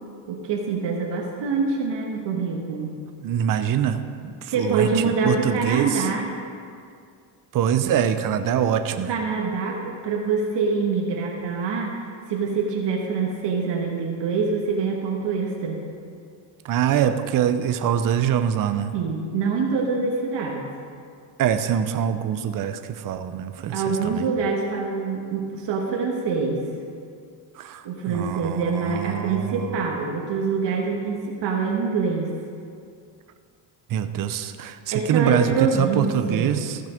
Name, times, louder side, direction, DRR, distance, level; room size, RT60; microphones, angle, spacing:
voice 1, 0.3-2.9 4.5-6.3 9.0-15.8 18.9-20.6 23.7-26.6 27.8-32.3 34.9-36.5, right 4 dB, 65° right, 0 dB, 1.5 m, -25 dB
voice 2, 3.2-6.1 7.5-9.1 16.6-18.9 21.4-24.2 27.6-29.8 33.9-36.8, right 9 dB, 45° right, 9 dB, 0.7 m, -24 dB
15.0 x 6.4 x 5.1 m, 2.3 s
cardioid pair, 95°, 47 cm